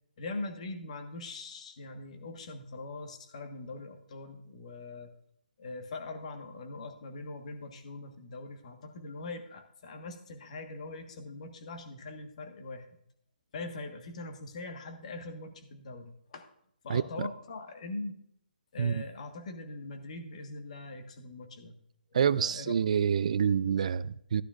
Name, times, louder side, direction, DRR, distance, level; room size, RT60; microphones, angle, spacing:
voice 1, 0.2-5.1 5.6-12.9 13.5-16.4 16.8-18.1 18.7-21.8 22.1-22.8, left 2 dB, 40° left, 1.4 m, -42 dB
voice 2, 16.9-17.3 18.8-19.0 22.1-24.4, right 7 dB, 45° right, 0.4 m, -27 dB
14.5 x 9.9 x 2.5 m
hypercardioid pair, 165°, 5 cm